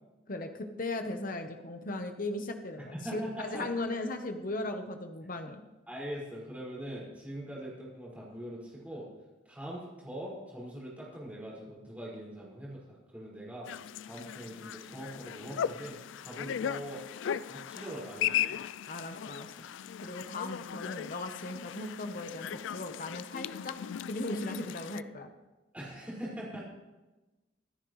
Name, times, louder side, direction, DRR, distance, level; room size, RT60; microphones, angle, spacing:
voice 1, 0.3-5.6 18.9-19.5 20.0-23.8 24.1-25.3, left 2 dB, 45° left, 6 dB, 1.0 m, -37 dB
voice 2, 2.9-3.7 5.4-5.6 5.9-9.1 9.4-13.7 14.0-17.0 17.5-18.6 25.7-26.6, equal, 5° right, -6 dB, 5.4 m, -42 dB
sound 1, 13.7-25.0, left 9 dB, 70° left, 0.3 m, -37 dB
25.0 x 10.0 x 3.2 m, 1.1 s
head